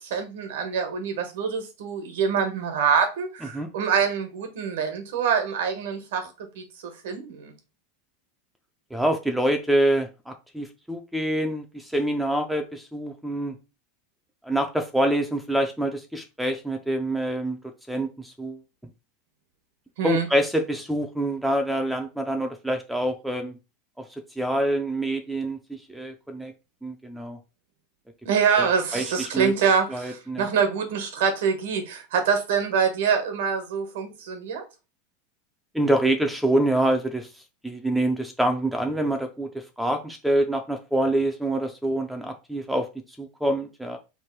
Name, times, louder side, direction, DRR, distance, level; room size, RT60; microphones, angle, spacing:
voice 1, 0.0-6.3 6.5-7.5 20.0-20.3 28.2-34.6, right 6 dB, 75° right, 1.2 m, -25 dB
voice 2, 8.9-13.5 14.4-17.6 17.9-18.6 20.0-23.5 24.4-26.5 26.8-27.4 28.6-28.7 28.9-29.5 29.9-30.5 35.7-37.3 37.6-39.5 39.8-42.9 43.2-44.0, right 1 dB, ahead, 0.3 m, -26 dB
3.1 x 2.5 x 4.4 m
supercardioid pair, 170°, 0 cm